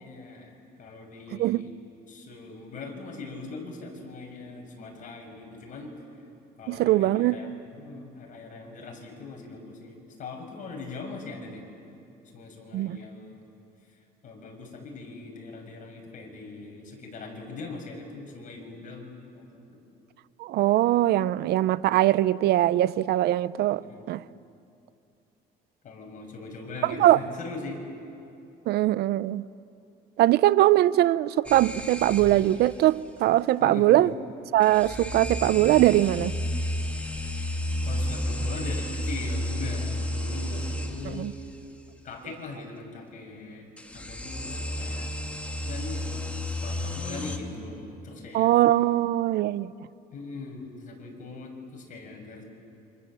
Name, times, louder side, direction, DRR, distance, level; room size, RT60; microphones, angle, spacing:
voice 1, 0.0-1.8 2.1-5.9 6.6-11.6 12.3-13.4 14.2-19.8 23.7-24.1 25.8-27.8 33.6-34.1 37.9-41.3 42.0-43.7 43.9-45.1 45.6-46.2 46.5-48.5 50.1-52.4, left 3 dB, 50° left, 6.4 m, -41 dB
voice 2, 1.3-1.7 6.7-7.4 12.7-13.0 20.4-24.2 26.8-27.2 28.7-29.4 30.2-34.1 34.5-36.4 41.1-41.3 48.3-49.7, right 14 dB, 70° right, 0.6 m, -22 dB
sound 1, 31.4-32.7 34.6-41.3 43.8-47.4, left 1 dB, 10° left, 2.5 m, -32 dB
28.5 x 26.0 x 7.6 m
cardioid pair, 110°, 17 cm